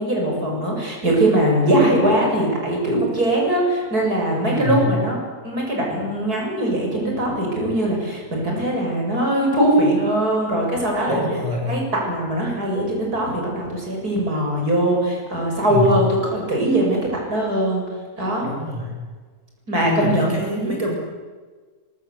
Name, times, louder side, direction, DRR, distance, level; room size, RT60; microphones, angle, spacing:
voice 1, 0.0-5.2 5.4-11.2 11.7-17.8 18.2-18.5 19.7-20.7, right 1 dB, 80° right, -1 dB, 8.0 m, -21 dB
voice 2, 4.5-4.9 11.1-11.8 15.7-16.0 18.4-19.0 19.8-20.9, left 1 dB, 20° right, -1 dB, 6.4 m, -24 dB
25.0 x 22.0 x 8.5 m, 1.4 s
omnidirectional pair, 1.6 m